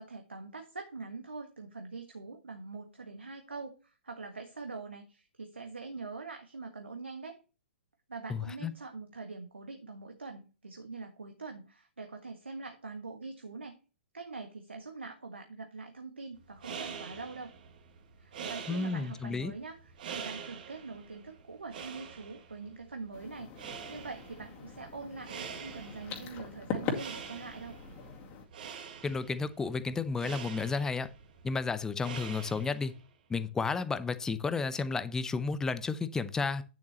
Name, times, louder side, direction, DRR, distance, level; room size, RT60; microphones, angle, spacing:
voice 1, 0.0-7.4 8.1-13.8 14.1-17.5 18.2-23.5 23.9-27.8, right 4 dB, 75° right, 1.5 m, -44 dB
voice 2, 8.3-8.7 18.7-19.5 29.0-31.1 31.4-32.9 33.3-36.6, left 4 dB, 10° left, 0.7 m, -32 dB
sound 1, 16.4-33.0, right 7 dB, 50° right, 1.9 m, -46 dB
sound 2, 23.1-28.4, left 6 dB, 30° left, 2.2 m, -41 dB
9.7 x 7.5 x 3.0 m
figure-of-eight pair, 115°, 6 cm